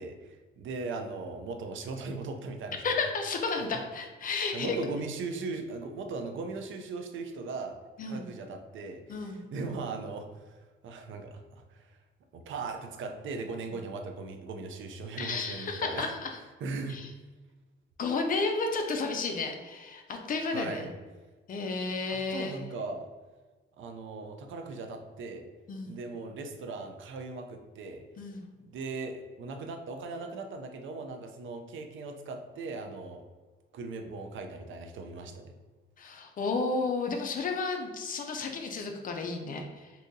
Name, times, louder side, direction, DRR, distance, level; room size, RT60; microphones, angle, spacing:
voice 1, 0.0-2.8 3.6-3.7 4.5-7.8 8.1-10.6 10.8-12.0 12.3-16.1 16.6-17.0 20.5-20.9 22.1-23.1 23.8-25.5 25.9-28.0 28.6-33.2 33.7-35.5, right 3 dB, 75° right, 5 dB, 0.5 m, -38 dB
voice 2, 2.8-4.8 8.0-8.3 9.1-9.4 15.2-16.3 16.9-17.1 18.0-20.9 21.5-22.6 25.7-25.9 28.2-28.4 36.0-39.9, left 3 dB, 45° left, 4 dB, 0.4 m, -32 dB
3.7 x 2.7 x 2.6 m, 1.3 s
wide cardioid pair, 165°, 20 cm